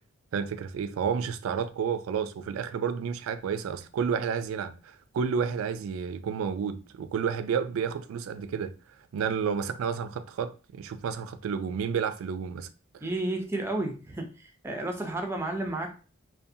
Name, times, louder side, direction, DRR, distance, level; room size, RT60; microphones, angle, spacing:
voice 1, 0.3-8.7 9.1-12.7 12.9-13.1, right 6 dB, 80° right, 0.3 m, -31 dB
voice 2, 13.0-14.3 14.6-16.0, right 2 dB, 10° right, 0.4 m, -31 dB
2.4 x 2.3 x 2.6 m
head